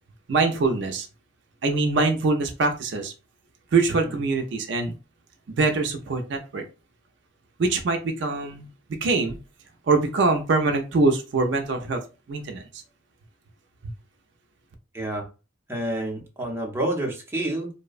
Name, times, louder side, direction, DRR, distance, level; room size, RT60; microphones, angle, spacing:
voice 1, 0.3-1.1 1.6-3.1 3.7-4.9 5.6-6.6 7.6-8.7 9.0-9.4 9.9-12.0 12.3-12.8, right 3 dB, 60° right, 4 dB, 0.4 m, -23 dB
voice 2, 15.7-17.7, right 1 dB, 15° right, 0 dB, 0.6 m, -28 dB
2.6 x 2.1 x 2.4 m, 0.31 s
head